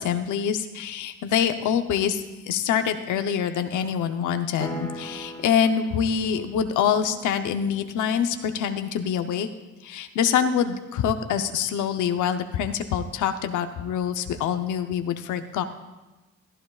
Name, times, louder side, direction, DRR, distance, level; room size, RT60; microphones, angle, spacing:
voice 1, 0.0-9.5 9.8-15.6, left 8 dB, 80° left, 8 dB, 0.8 m, -25 dB
Piano Chord, 4.6-8.7, equal, 5° left, 1.9 m, -41 dB
17.0 x 12.0 x 2.4 m, 1.1 s
cardioid pair, 90°, 30 cm